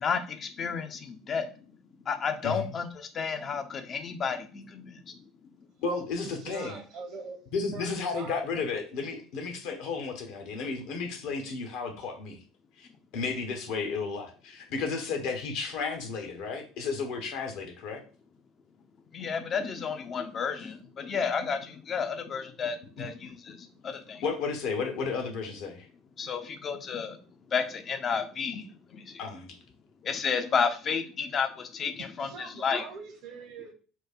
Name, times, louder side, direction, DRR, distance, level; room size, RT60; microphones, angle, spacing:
voice 1, 0.0-1.7 1.9-5.1 5.4-5.5 19.1-24.3 26.2-27.2 27.5-29.2 30.0-32.3 32.6-32.8, left 6 dB, 35° left, 7 dB, 0.7 m, -32 dB
voice 2, 5.8-6.8 7.5-12.4 12.8-12.9 13.1-18.0 23.0-23.1 24.2-25.9 29.2-29.5, left 4 dB, 60° left, 4 dB, 1.2 m, -33 dB
voice 3, 6.4-7.4 7.7-8.4 8.7-8.8 32.2-33.7, right 4 dB, 55° right, 5 dB, 1.2 m, -42 dB
4.5 x 2.3 x 4.5 m, 0.38 s
figure-of-eight pair, 65°, 0 cm